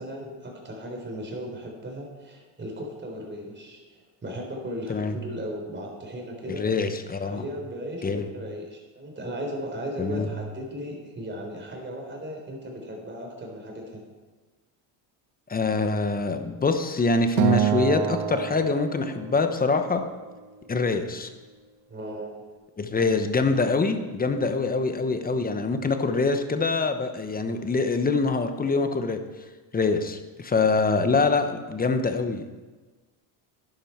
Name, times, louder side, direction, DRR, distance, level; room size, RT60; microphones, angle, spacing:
voice 1, 0.0-6.7 7.2-14.0 21.9-22.4, equal, 20° right, 0 dB, 3.9 m, -36 dB
voice 2, 6.5-7.4 8.0-8.3 10.0-10.3 15.5-20.0 20.7-21.3 22.8-29.2 29.7-32.4, left 4 dB, 20° left, 8 dB, 1.0 m, -24 dB
Acoustic guitar, 17.4-19.8, right 10 dB, 80° right, 1.6 m, -26 dB
11.0 x 11.0 x 4.5 m, 1.3 s
supercardioid pair, 110°, 49 cm